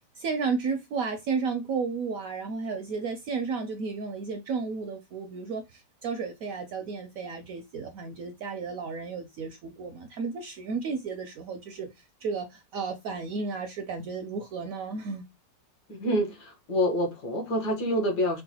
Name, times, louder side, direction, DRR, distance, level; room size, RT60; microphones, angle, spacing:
voice 1, 0.1-11.9 12.2-15.2, right 5 dB, 70° right, 0.8 m, -33 dB
voice 2, 15.9-18.4, equal, 70° left, 1.7 m, -27 dB
4.6 x 2.1 x 2.8 m
omnidirectional pair, 1.9 m